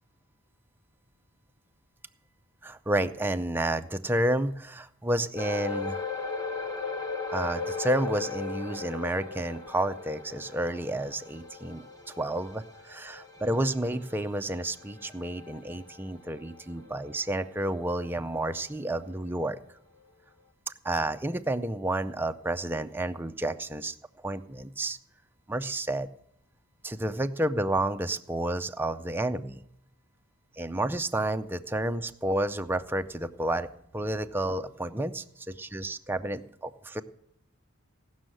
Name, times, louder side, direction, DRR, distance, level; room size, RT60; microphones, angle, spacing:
voice 1, 2.6-6.0 7.3-11.8 12.2-19.6 20.7-23.9 24.2-25.0 25.5-26.1 26.8-29.6 30.6-33.7 33.9-37.0, right 1 dB, 10° right, 8 dB, 0.5 m, -30 dB
sound 1, 5.4-18.1 18.4-18.6 19.1-19.2, left 4 dB, 20° left, 1.2 m, -38 dB
16.5 x 6.3 x 7.7 m, 0.74 s
head